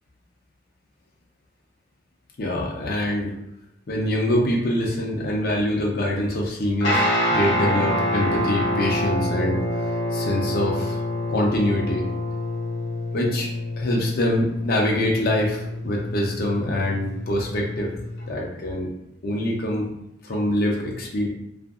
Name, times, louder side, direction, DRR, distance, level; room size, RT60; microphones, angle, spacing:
voice 1, 2.4-3.3 3.9-9.6 10.1-11.0 11.3-12.0 13.1-13.5 13.8-17.9 18.3-18.9 19.2-19.9 20.2-21.3, left 1 dB, 55° left, -1 dB, 0.5 m, -24 dB
Guitar, 6.8-18.3, left 1 dB, 85° left, 0.7 m, -27 dB
2.7 x 2.5 x 2.3 m, 0.82 s
head